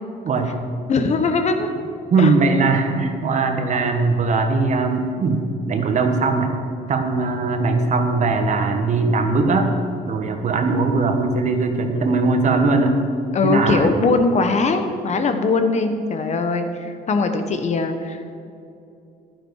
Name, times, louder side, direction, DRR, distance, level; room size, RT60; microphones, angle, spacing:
voice 1, 0.9-1.7 2.2-2.3 13.3-18.4, left 3 dB, 45° left, 7 dB, 1.1 m, -21 dB
voice 2, 2.1-6.5 6.9-9.7 10.1-13.0 13.4-14.1, right 3 dB, 45° right, 5 dB, 1.4 m, -20 dB
11.0 x 10.5 x 4.8 m, 2.6 s
cardioid pair, 110°, 17 cm